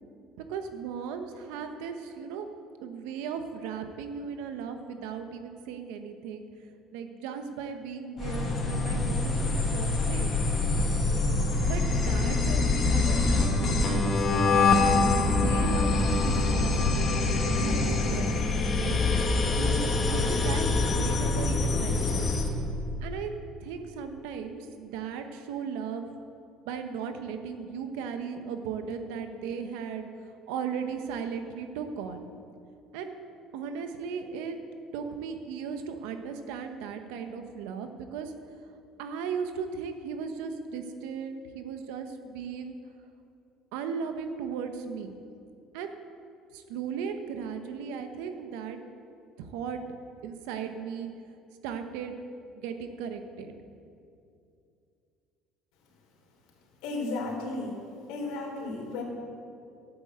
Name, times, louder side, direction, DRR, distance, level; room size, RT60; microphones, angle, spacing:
voice 1, 0.5-2.5 2.8-6.5 6.9-10.3 11.7-13.6 13.8-14.7 15.4-17.3 17.6-18.3 18.8-19.0 19.5-22.3 23.0-23.3 23.6-26.1 26.6-30.0 30.5-32.2 32.9-33.2 33.5-34.6 34.9-38.3 39.0-42.8 43.7-45.1 45.7-45.9 46.5-48.8 49.4-49.8 50.2-51.1 51.6-52.2 52.5-53.5, right 6 dB, 90° right, 7 dB, 1.2 m, -36 dB
sound 1, 8.2-22.5, left 3 dB, 35° left, 1.9 m, -25 dB
voice 2, 56.8-57.8 58.1-59.0, left 2 dB, 85° left, 0 dB, 3.4 m, -34 dB
12.0 x 9.0 x 8.1 m, 2.5 s
cardioid pair, 110°, 0 cm